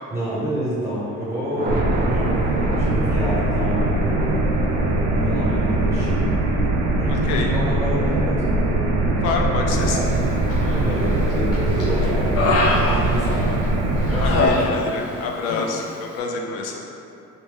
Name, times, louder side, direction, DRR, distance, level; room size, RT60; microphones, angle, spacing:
voice 1, 0.1-4.5 5.1-6.3 7.0-8.5 10.7-13.6 14.0-14.8, equal, 5° right, -10 dB, 0.9 m, -28 dB
Thunder, 0.8-12.1, right 2 dB, 25° right, 0.4 m, -36 dB
sound 1, 1.7-14.5, right 2 dB, 70° right, 0.6 m, -21 dB
voice 2, 9.2-10.2 14.2-16.8, left 4 dB, 85° left, 1 dB, 0.5 m, -27 dB
Human voice, 10.5-11.1 11.5-13.7 14.1-15.2 15.4-15.7, left 2 dB, 40° left, 0.6 m, -23 dB
3.2 x 2.8 x 3.2 m, 2.7 s
supercardioid pair, 80°, 37 cm